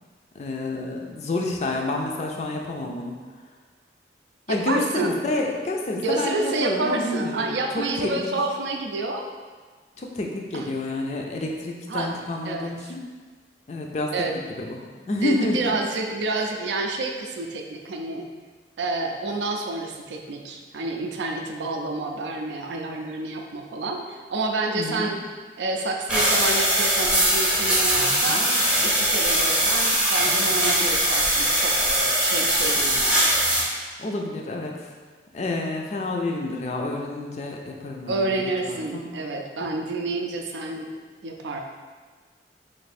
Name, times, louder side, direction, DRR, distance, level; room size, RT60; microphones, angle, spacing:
voice 1, 0.3-3.2 4.5-8.3 10.0-13.0 13.7-15.8 24.7-25.1 34.0-34.9 35.3-39.0 39.6-39.7, left 2 dB, 35° left, 1 dB, 0.4 m, -29 dB
voice 2, 4.5-5.2 5.9-9.2 10.5-10.7 11.9-12.1 12.4-12.7 14.1-14.3 15.2-18.3 18.8-25.2 25.6-28.5 28.8-33.3 38.1-40.9 41.2-41.6, right 3 dB, 75° right, 3 dB, 0.4 m, -29 dB
sound 1, 26.1-33.6, right 1 dB, 5° right, 0.6 m, -21 dB
3.2 x 2.7 x 4.1 m, 1.4 s
head